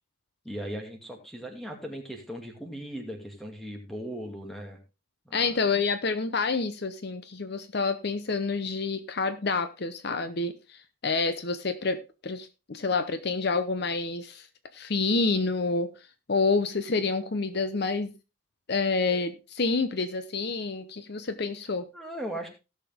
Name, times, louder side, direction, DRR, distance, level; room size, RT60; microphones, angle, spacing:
voice 1, 0.4-4.8 5.3-5.6 21.9-22.5, equal, ahead, 2 dB, 2.4 m, -38 dB
voice 2, 5.3-14.5 14.7-15.9 16.3-18.1 18.7-21.9, left 4 dB, 50° left, 11 dB, 0.7 m, -28 dB
17.0 x 6.7 x 3.6 m, 0.28 s
head